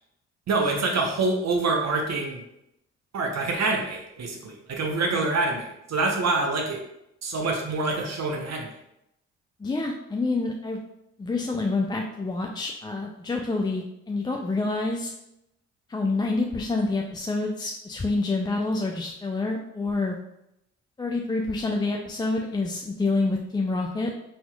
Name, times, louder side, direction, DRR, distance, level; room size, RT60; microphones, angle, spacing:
voice 1, 0.5-2.4 3.1-6.8 7.2-8.7, right 3 dB, 50° right, 2 dB, 0.8 m, -26 dB
voice 2, 9.6-10.8 11.2-15.1 15.9-20.2 21.0-24.1, left 3 dB, 15° left, 1 dB, 0.3 m, -27 dB
4.1 x 2.8 x 2.3 m, 0.83 s
hypercardioid pair, 45°, 35 cm